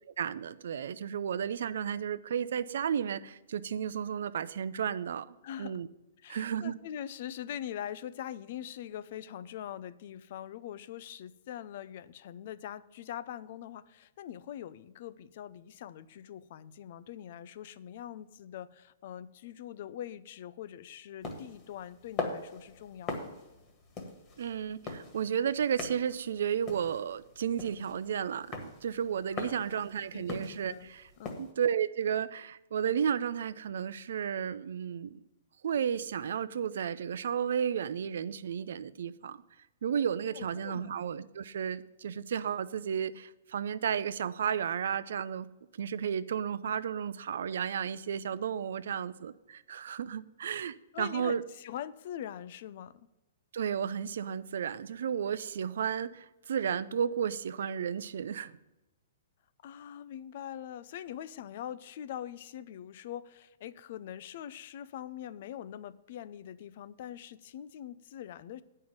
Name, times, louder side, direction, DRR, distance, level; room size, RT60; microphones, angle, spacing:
voice 1, 0.2-5.9 6.3-6.8 24.4-31.1 31.4-35.2 35.6-39.4 39.8-45.5 45.8-51.4 53.5-58.6, right 8 dB, 70° right, 0.5 m, -33 dB
voice 2, 5.4-5.8 6.2-23.4 29.3-29.8 30.1-30.9 31.2-31.5 40.3-41.0 50.9-53.1 59.6-68.6, left 10 dB, 55° left, 0.5 m, -43 dB
sound 1, 21.2-31.5, left 3 dB, 30° left, 1.7 m, -42 dB
8.7 x 5.5 x 7.7 m
hypercardioid pair, 135°, 0 cm